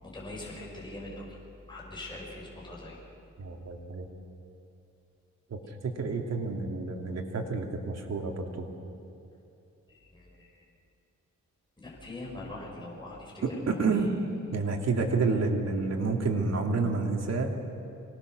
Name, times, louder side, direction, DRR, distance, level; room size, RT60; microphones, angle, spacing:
voice 1, 0.0-1.3 1.7-3.0 10.1-10.5 11.8-13.6, left 2 dB, 15° left, -4 dB, 5.4 m, -42 dB
voice 2, 3.4-4.1 5.5-8.5 13.4-14.2 14.5-17.6, right 4 dB, 60° right, 2 dB, 2.7 m, -29 dB
25.0 x 19.0 x 6.4 m, 2.7 s
cardioid pair, 100°, 30 cm